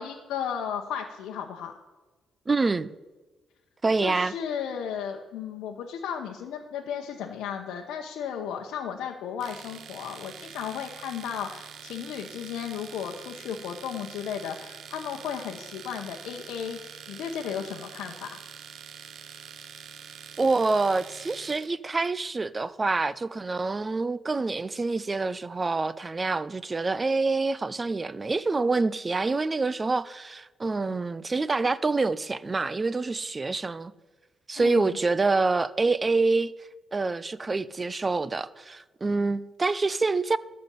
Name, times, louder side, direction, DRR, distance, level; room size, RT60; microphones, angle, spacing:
voice 1, 0.0-1.7 4.0-18.4 34.5-35.0, left 8 dB, 85° left, 0.8 m, -34 dB
voice 2, 2.5-2.9 3.8-4.3 20.4-33.9 34.5-36.5 36.9-40.4, right 3 dB, 25° right, 0.5 m, -26 dB
Domestic sounds home sounds, 9.4-21.7, right 8 dB, 65° right, 0.7 m, -45 dB
12.5 x 4.3 x 8.3 m
cardioid pair, 90°, 0 cm